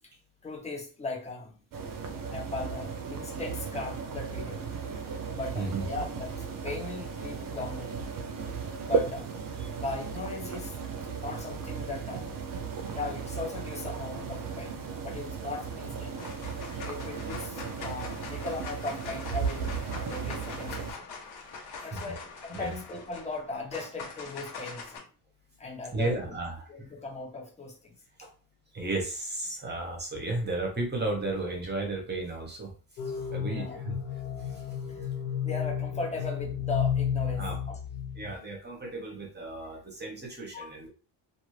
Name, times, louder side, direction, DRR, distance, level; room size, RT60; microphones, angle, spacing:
voice 1, 0.4-1.5 2.3-4.6 5.3-7.9 8.8-9.3 9.8-10.8 11.2-12.3 12.9-16.2 16.8-21.1 21.8-25.0 25.6-26.4 26.7-27.9 33.4-33.8 34.9-35.1 35.4-37.8 40.5-40.7, left 3 dB, 15° left, 0.8 m, -38 dB
sound 1, 1.7-20.9, right 6 dB, 40° right, 0.6 m, -35 dB
voice 2, 5.5-5.9 8.4-8.5 21.9-22.0 22.5-22.7 25.9-26.9 28.7-32.7 33.1-34.0 34.5-34.6 37.4-37.6 38.2-40.9, right 2 dB, 20° right, 1.0 m, -34 dB
sound 2, 15.5-15.8 16.2-25.0, left 4 dB, 50° left, 1.2 m, -43 dB
sound 3, 33.0-38.3, left 8 dB, 90° left, 0.9 m, -32 dB
2.6 x 2.6 x 3.1 m
cardioid pair, 140°, 50 cm